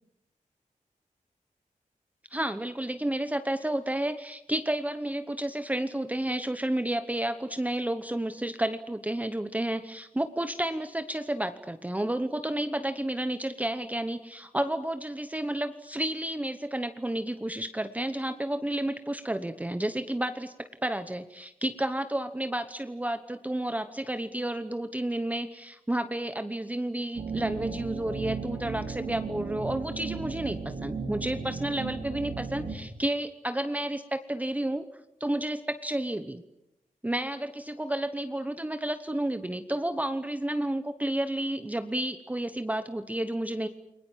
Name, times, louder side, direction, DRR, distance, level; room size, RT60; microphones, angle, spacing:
voice 1, 2.3-34.8 35.2-36.4 37.0-43.7, right 1 dB, 10° right, 9 dB, 1.0 m, -31 dB
sound 1, 27.1-32.7, right 4 dB, 75° right, 4.5 m, -35 dB
29.5 x 22.0 x 7.4 m, 0.86 s
wide cardioid pair, 145°, 14 cm